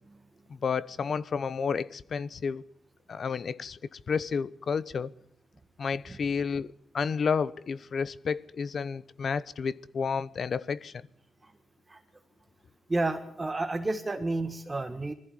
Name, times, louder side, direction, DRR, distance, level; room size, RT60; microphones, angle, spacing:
voice 1, 0.5-2.6 3.1-5.1 5.8-11.0, left 6 dB, 55° left, 0.9 m, -31 dB
voice 2, 12.9-15.1, right 2 dB, 25° right, 1.5 m, -31 dB
21.0 x 14.5 x 9.9 m
cardioid pair, 90°, 0 cm